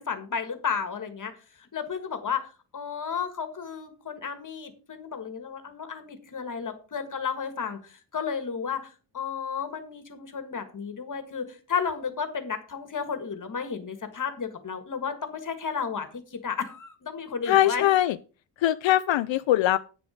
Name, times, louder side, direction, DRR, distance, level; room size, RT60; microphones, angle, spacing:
voice 1, 0.0-1.3 1.6-17.8, left 6 dB, 45° left, 9 dB, 1.5 m, -33 dB
voice 2, 17.5-18.1 18.6-19.8, left 13 dB, 80° left, 12 dB, 0.5 m, -21 dB
9.3 x 7.1 x 5.0 m, 0.36 s
wide cardioid pair, 165°, 45 cm